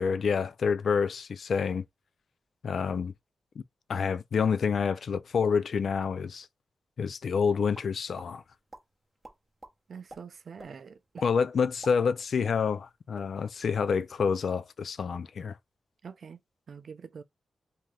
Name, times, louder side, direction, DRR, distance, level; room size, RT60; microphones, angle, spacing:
voice 1, 0.0-1.8 2.6-3.1 3.9-6.5 7.0-8.4 11.2-15.6, left 6 dB, 70° left, 0.3 m, -28 dB
sound 1, 7.8-8.3 8.7-8.8 9.2-9.7 10.1-10.2 10.6-10.7 11.2-11.3 11.7-12.9 13.1-13.3 13.7-14.0, right 2 dB, 20° right, 0.8 m, -47 dB
voice 2, 9.9-11.2 16.0-16.4 16.7-17.2, right 6 dB, 70° right, 0.4 m, -45 dB
2.7 x 2.3 x 3.2 m
cardioid pair, 85°, 0 cm